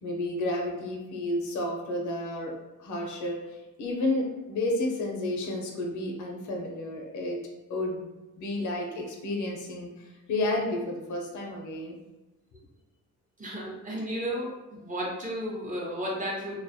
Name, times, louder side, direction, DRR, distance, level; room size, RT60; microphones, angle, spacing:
voice 1, 0.0-2.5 2.8-7.4 7.7-8.1 8.4-12.0, left 1 dB, 75° left, 0 dB, 0.6 m, -31 dB
voice 2, 13.4-16.6, equal, 25° right, -4 dB, 0.8 m, -33 dB
2.3 x 2.0 x 2.6 m, 1.1 s
cardioid pair, 90°, 30 cm